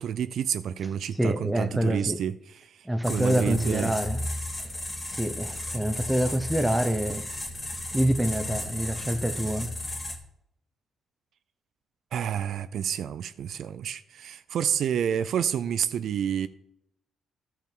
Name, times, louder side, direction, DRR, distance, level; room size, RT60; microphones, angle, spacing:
voice 1, 0.0-2.4 2.6-3.9 12.1-16.5, right 9 dB, 70° right, 0.4 m, -29 dB
voice 2, 1.2-2.2 2.8-4.3 5.1-7.2 7.9-9.7, equal, 5° right, 0.8 m, -26 dB
sound 1, 3.0-10.2, left 1 dB, 20° left, 1.6 m, -34 dB
11.5 x 5.8 x 4.5 m
cardioid pair, 90°, 0 cm